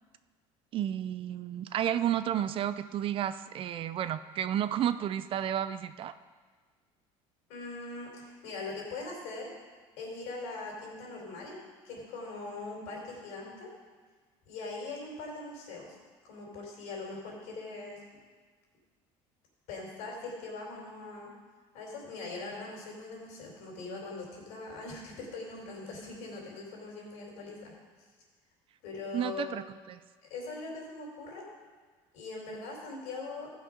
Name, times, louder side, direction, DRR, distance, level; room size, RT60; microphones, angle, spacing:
voice 1, 0.7-6.1 29.1-30.0, right 10 dB, 45° right, 12 dB, 0.5 m, -32 dB
voice 2, 7.5-9.5 10.0-11.6 11.8-13.7 14.5-16.0 16.2-18.0 19.7-21.3 21.7-27.7 28.8-29.6 30.3-31.4 32.1-33.5, left 3 dB, 75° left, -2 dB, 4.0 m, -41 dB
15.0 x 5.9 x 5.2 m, 1.5 s
cardioid pair, 115°, 13 cm